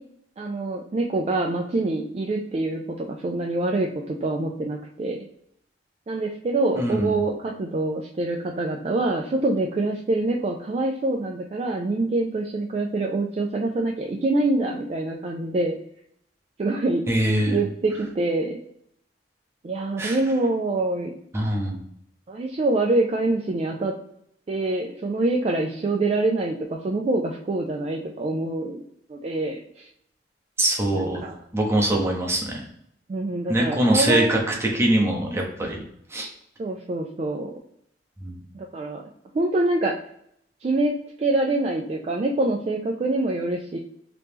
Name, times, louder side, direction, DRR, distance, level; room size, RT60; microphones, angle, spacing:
voice 1, 0.4-5.2 6.1-15.8 16.6-17.0 17.5-18.6 19.6-21.1 22.3-23.9 24.5-28.8 29.1-29.9 30.9-31.4 33.1-34.4 36.6-37.5 38.5-39.1 39.3-39.9 40.6-43.8, right 2 dB, 35° right, 1 dB, 0.3 m, -25 dB
voice 2, 6.8-7.1 17.1-17.6 20.0-20.2 21.3-21.8 30.6-31.2 31.5-32.6 33.5-35.8 36.1-36.3 38.2-38.4, right 1 dB, 15° right, -1 dB, 0.7 m, -23 dB
3.1 x 2.9 x 3.4 m, 0.72 s
head